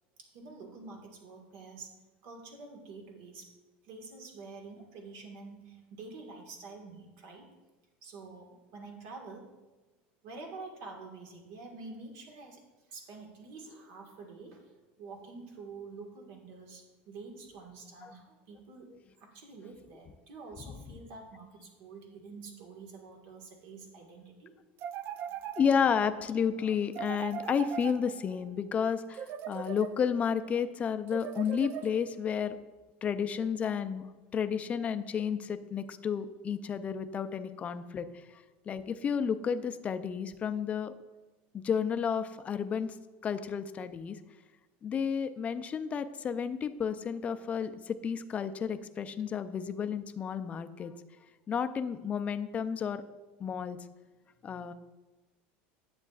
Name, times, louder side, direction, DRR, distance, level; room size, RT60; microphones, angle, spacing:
voice 1, 0.2-1.9 2.2-3.5 3.8-7.5 8.0-9.5 10.2-12.6 12.9-14.7 15.0-18.9 19.2-24.5 38.0-38.1, right 3 dB, 70° right, 1 dB, 1.6 m, -47 dB
sound 1, 24.8-26.1 26.9-28.4 29.1-30.3 31.1-32.3, right 9 dB, 45° right, 0.4 m, -40 dB
voice 2, 25.6-29.2 29.5-32.6 33.0-34.1 34.3-38.1 38.7-40.9 41.5-42.9 43.2-44.2 44.8-50.9 51.5-53.0 53.4-53.8 54.4-54.7, left 7 dB, 25° left, 10 dB, 0.4 m, -31 dB
10.5 x 7.8 x 2.4 m, 1.2 s
supercardioid pair, 130°, 5 cm